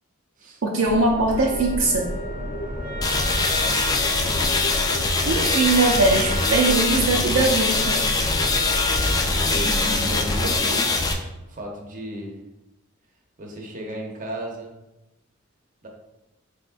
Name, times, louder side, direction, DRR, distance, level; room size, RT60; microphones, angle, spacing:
voice 1, 0.6-2.1 5.3-8.0, right 3 dB, 70° right, -1 dB, 0.5 m, -21 dB
sound 1, 0.8-10.6, left 1 dB, 90° left, 0.7 m, -31 dB
Wind instrument woodwind instrument, 1.3-9.2, right 1 dB, 45° left, 0.8 m, -36 dB
sound 2, 3.0-11.1, left 3 dB, 20° left, 0.3 m, -23 dB
voice 2, 3.5-5.0 9.1-12.4 13.4-14.7 15.8-15.9, right 1 dB, 40° right, 0 dB, 0.7 m, -35 dB
4.1 x 3.5 x 2.5 m, 0.96 s
head